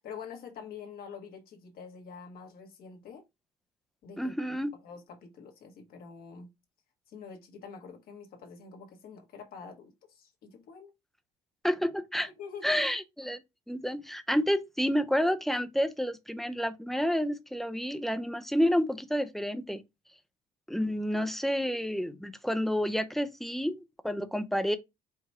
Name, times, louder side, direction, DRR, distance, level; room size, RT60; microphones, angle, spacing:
voice 1, 0.0-3.2 4.0-4.3 4.8-6.5 7.1-10.9 12.4-12.9, left 6 dB, 60° left, 1.2 m, -46 dB
voice 2, 4.2-4.7 11.6-12.3 12.6-13.4 13.7-19.8 20.7-24.8, equal, ahead, 0.5 m, -29 dB
4.8 x 2.2 x 4.2 m
cardioid pair, 110°, 17 cm